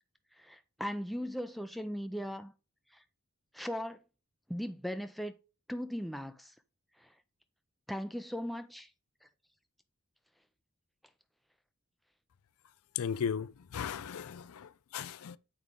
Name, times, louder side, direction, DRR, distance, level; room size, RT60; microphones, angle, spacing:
voice 1, 0.4-2.5 2.9-3.0 3.5-4.0 4.5-5.3 5.7-6.5 7.0-7.1 7.9-8.9, equal, ahead, 0.3 m, -38 dB
voice 2, 13.0-15.4, left 7 dB, 75° left, 0.4 m, -36 dB
7.4 x 4.8 x 3.8 m
head